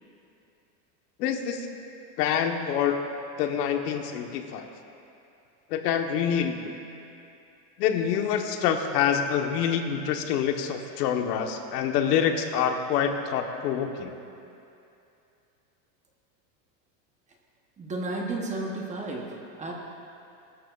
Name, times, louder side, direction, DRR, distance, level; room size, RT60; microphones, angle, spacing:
voice 1, 1.2-1.7 2.2-3.0 3.4-4.7 5.7-6.7 7.8-14.1, left 8 dB, 70° left, 5 dB, 1.2 m, -26 dB
voice 2, 17.8-19.7, right 2 dB, 15° right, 0 dB, 0.9 m, -33 dB
20.5 x 13.0 x 2.4 m, 2.7 s
supercardioid pair, 165°, 50 cm